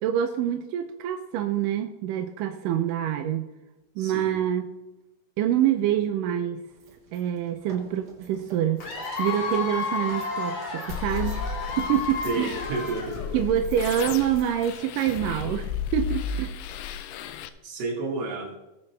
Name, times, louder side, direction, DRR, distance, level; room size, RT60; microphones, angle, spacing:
voice 1, 0.0-3.5 4.0-4.7 5.4-6.6 7.1-8.8 9.2-12.5 13.3-16.6, right 10 dB, 85° right, 6 dB, 2.3 m, -26 dB
voice 2, 4.0-4.3 12.2-13.4 17.6-18.5, right 3 dB, 60° right, 0 dB, 3.2 m, -31 dB
sound 1, 6.7-16.7, right 3 dB, 40° right, 1.7 m, -51 dB
Cheering / Applause / Crowd, 8.8-13.5, left 4 dB, 65° left, 3.8 m, -32 dB
sound 2, 10.9-17.5, left 6 dB, 85° left, 2.3 m, -34 dB
18.5 x 7.7 x 3.3 m, 1.0 s
omnidirectional pair, 3.7 m